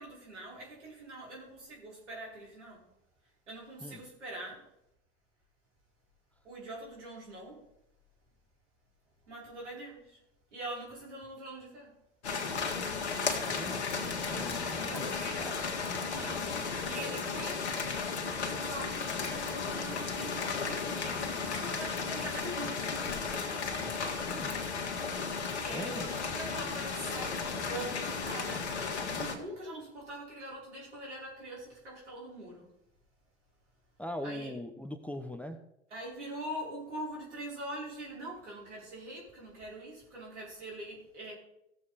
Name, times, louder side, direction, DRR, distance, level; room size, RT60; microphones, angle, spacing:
voice 1, 0.0-2.9 3.5-4.7 6.4-7.6 9.3-10.2 10.5-11.9 14.8-15.4 16.1-17.7 18.5-22.9 25.1-28.8 29.1-32.7 34.2-34.5 35.9-41.3, right 1 dB, 80° right, -3 dB, 4.9 m, -43 dB
sound 1, 12.2-29.4, left 5 dB, 75° left, 1.7 m, -34 dB
voice 2, 13.5-15.6 23.8-24.7 25.7-26.1 34.0-35.6, left 1 dB, 5° left, 6 dB, 0.9 m, -42 dB
16.5 x 7.3 x 4.2 m, 0.81 s
figure-of-eight pair, 80°, 34 cm